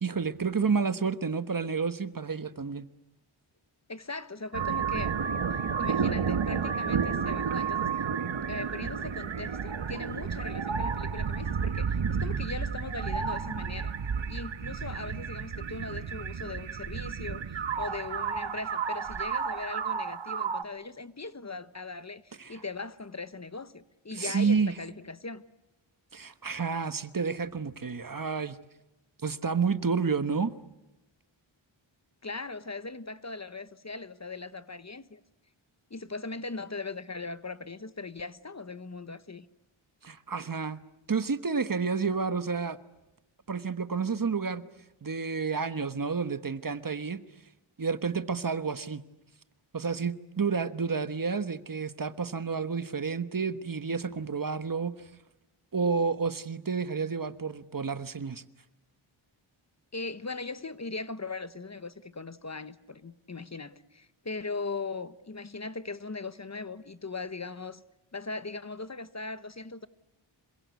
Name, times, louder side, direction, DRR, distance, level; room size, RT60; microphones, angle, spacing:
voice 1, 0.0-2.9 22.4-22.6 24.1-24.7 26.1-28.6 29.2-30.5 40.0-40.8 41.1-42.8 43.5-44.6 45.0-47.2 47.8-49.0 49.7-54.9 55.7-58.4, right 5 dB, 40° right, 1.2 m, -30 dB
voice 2, 3.9-5.1 5.5-7.9 8.5-13.9 14.3-25.4 32.2-35.2 35.9-39.5 59.9-67.8 68.1-69.9, left 3 dB, 35° left, 1.1 m, -39 dB
sound 1, 4.5-20.6, right 6 dB, 60° right, 1.4 m, -31 dB
27.0 x 23.0 x 8.2 m
wide cardioid pair, 70°, 50 cm